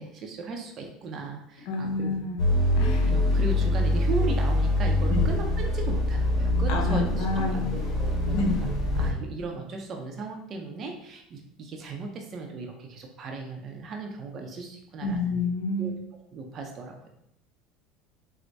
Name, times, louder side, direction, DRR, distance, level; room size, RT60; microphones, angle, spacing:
voice 1, 0.0-2.1 3.0-8.5 9.0-15.4 15.8-15.9 16.3-17.1, right 3 dB, 45° right, 2 dB, 0.6 m, -36 dB
voice 2, 1.7-2.4 2.8-3.1 5.1-5.2 6.7-7.6 8.3-8.5 15.0-15.9, left 3 dB, 70° left, 2 dB, 0.7 m, -28 dB
sound 1, 2.4-9.1, left 1 dB, 50° left, 1.4 m, -24 dB
4.4 x 2.1 x 2.7 m, 0.75 s
supercardioid pair, 100°, 0 cm